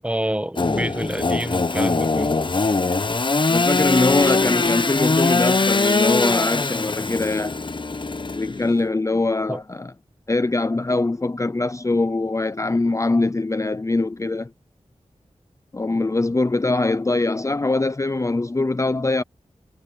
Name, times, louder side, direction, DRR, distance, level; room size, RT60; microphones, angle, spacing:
voice 1, 0.0-2.3 9.5-9.6, right 1 dB, 10° right, 1.3 m, -27 dB
Engine / Sawing, 0.6-8.8, left 3 dB, 45° left, 0.9 m, -22 dB
voice 2, 3.5-7.6 8.2-9.9 10.3-14.5 15.7-19.2, left 2 dB, 25° left, 0.6 m, -22 dB
wide cardioid pair, 80°, 12 cm